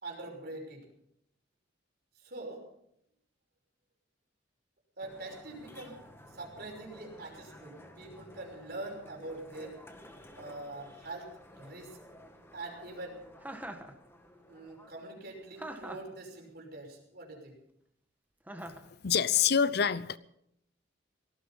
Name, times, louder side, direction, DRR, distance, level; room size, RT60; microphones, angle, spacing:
voice 1, 0.0-0.9 2.2-2.6 5.0-6.0 6.3-9.7 10.3-11.9 12.5-13.2 14.5-17.6, right 2 dB, 60° right, 1 dB, 5.8 m, -44 dB
sound 1, 5.0-16.6, left 1 dB, 15° left, 1.8 m, -54 dB
Chuckle chortle, 13.4-13.9 15.6-16.1 18.5-18.9, right 1 dB, 10° right, 1.6 m, -42 dB
voice 2, 18.8-20.2, left 7 dB, 60° left, 16 dB, 0.7 m, -27 dB
18.0 x 14.5 x 5.6 m, 0.73 s
head